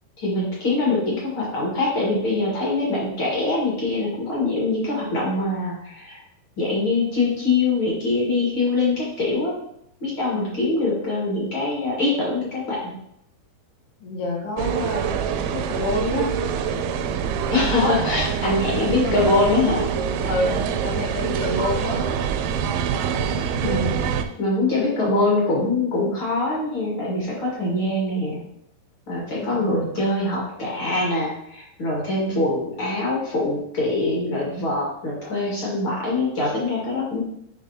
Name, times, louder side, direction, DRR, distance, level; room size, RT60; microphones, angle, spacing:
voice 1, 0.2-6.2 6.6-9.6 10.0-13.0 17.5-19.9 23.6-24.0 24.4-28.4 29.1-37.2, left 2 dB, 50° left, -4 dB, 1.5 m, -23 dB
voice 2, 14.0-16.3 17.5-18.2 19.0-19.2 20.2-22.0 23.6-24.2 29.3-30.0, left 2 dB, 85° left, -4 dB, 3.6 m, -28 dB
sound 1, 14.6-24.2, right 7 dB, 85° right, 2.1 m, -25 dB
10.5 x 3.6 x 2.8 m, 0.73 s
omnidirectional pair, 4.6 m